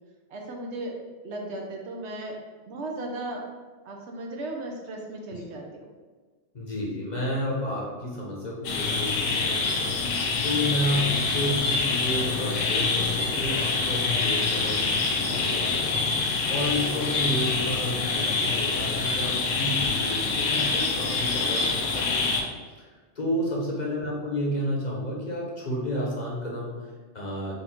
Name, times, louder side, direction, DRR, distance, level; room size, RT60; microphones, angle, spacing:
voice 1, 0.3-3.5 3.8-5.9 10.8-11.1, right 2 dB, 65° right, 1 dB, 0.9 m, -36 dB
voice 2, 6.5-10.0 10.4-16.1 16.5-22.3 22.6-22.9 23.1-27.5, left 1 dB, 40° left, -4 dB, 0.8 m, -31 dB
sound 1, 8.6-22.4, left 4 dB, 90° left, 1.0 m, -26 dB
4.1 x 2.5 x 4.3 m, 1.4 s
omnidirectional pair, 1.3 m